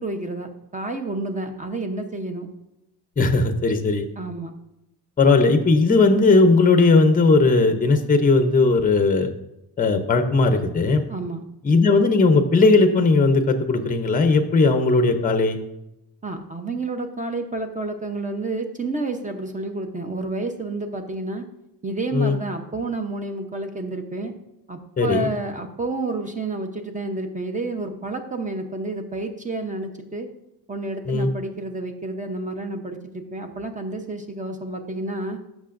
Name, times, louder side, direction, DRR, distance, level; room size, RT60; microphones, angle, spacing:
voice 1, 0.0-2.5 4.2-4.5 11.1-11.4 16.2-21.4 21.8-24.3 24.7-30.3 30.7-35.4, right 2 dB, 20° right, 5 dB, 0.8 m, -30 dB
voice 2, 3.2-4.0 5.2-9.3 9.8-11.0 11.6-15.6 22.1-22.4 25.0-25.3 31.1-31.3, left 3 dB, 20° left, 8 dB, 0.7 m, -17 dB
14.5 x 6.1 x 2.6 m, 0.88 s
wide cardioid pair, 160°, 40 cm